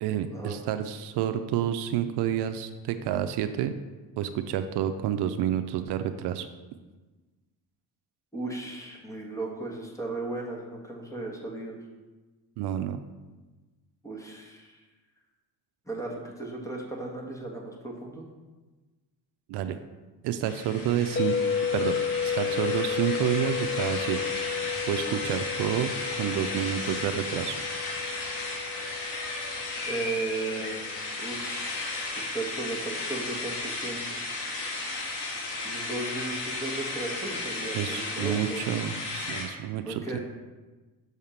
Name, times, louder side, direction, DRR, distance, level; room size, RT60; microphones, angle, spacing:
voice 1, 0.0-3.7 4.2-6.5 12.6-13.0 19.5-19.8 20.2-21.4 21.7-24.3 24.9-25.9 26.2-27.6 37.7-40.2, right 10 dB, 75° right, 9 dB, 0.5 m, -29 dB
voice 2, 8.3-11.8 14.0-14.8 15.8-18.2 29.9-34.2 35.6-38.8 39.8-40.2, right 2 dB, 10° left, -1 dB, 1.4 m, -36 dB
sound 1, 20.4-39.5, left 2 dB, 90° left, 1.5 m, -34 dB
sound 2, 21.2-31.2, left 7 dB, 30° left, 0.4 m, -32 dB
6.4 x 3.6 x 5.7 m, 1.2 s
cardioid pair, 95°, 40 cm